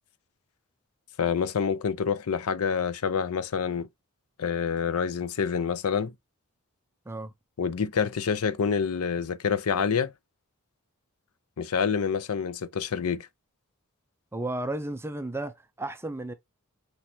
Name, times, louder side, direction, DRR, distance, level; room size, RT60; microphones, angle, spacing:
voice 1, 1.2-3.9 4.4-6.1 7.6-10.1 11.6-13.3, left 6 dB, 75° left, 0.5 m, -27 dB
voice 2, 14.3-16.3, right 2 dB, 10° right, 0.5 m, -33 dB
5.9 x 3.1 x 2.7 m
head